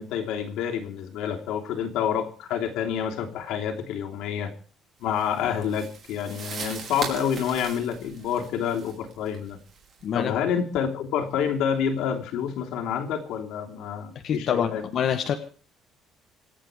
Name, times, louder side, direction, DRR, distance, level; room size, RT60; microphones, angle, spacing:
voice 1, 0.0-4.5 5.0-9.6 10.1-14.9, left 8 dB, 80° left, 3 dB, 3.2 m, -28 dB
sound 1, 5.1-10.0, right 5 dB, 40° right, 5.1 m, -39 dB
voice 2, 10.0-10.3 14.2-15.4, left 8 dB, 45° left, 5 dB, 1.5 m, -26 dB
26.0 x 9.0 x 5.1 m, 0.41 s
cardioid pair, 165°, 0 cm